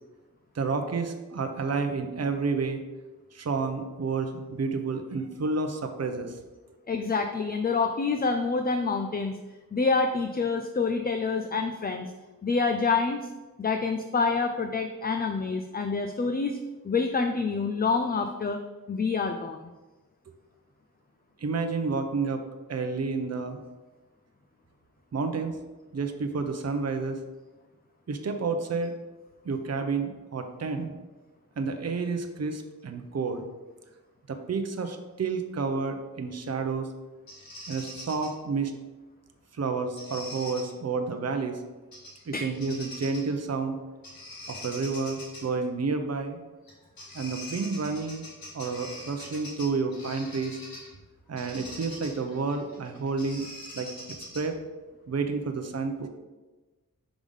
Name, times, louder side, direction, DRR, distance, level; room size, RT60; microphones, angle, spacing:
voice 1, 0.5-2.8 3.3-6.4 21.4-22.4 22.7-23.6 25.1-25.6 25.9-27.2 28.1-28.9 29.4-30.9 31.6-33.4 34.3-36.9 37.7-38.7 39.5-41.6 42.3-43.8 44.5-46.4 47.1-48.2 48.5-50.6 51.3-53.4 53.7-53.9 54.3-54.6 55.1-56.1, right 4 dB, 45° right, 6 dB, 0.7 m, -30 dB
voice 2, 6.9-9.3 9.7-12.1 12.4-13.3 13.6-16.6 16.8-18.6 18.9-19.6 42.3-42.5, left 4 dB, 25° left, 6 dB, 0.4 m, -27 dB
Bird vocalization bird call bird song, 37.3-38.3 40.0-40.6 41.9-42.2 42.5-43.3 44.0-45.4 46.7-46.8 47.0-50.9 51.4-54.6, left 1 dB, 75° left, 1.6 m, -43 dB
4.9 x 3.6 x 5.4 m, 1.2 s
wide cardioid pair, 75°, 35 cm